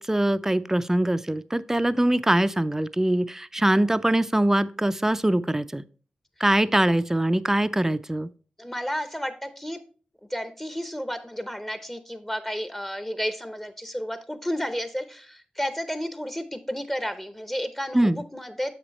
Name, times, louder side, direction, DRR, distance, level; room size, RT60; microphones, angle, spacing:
voice 1, 0.0-5.8 6.4-8.3 17.9-18.2, right 1 dB, 15° right, 14 dB, 0.4 m, -23 dB
voice 2, 8.6-9.8 10.3-18.7, equal, 10° left, 10 dB, 0.8 m, -32 dB
7.3 x 6.0 x 3.1 m, 0.40 s
cardioid pair, 45°, 3 cm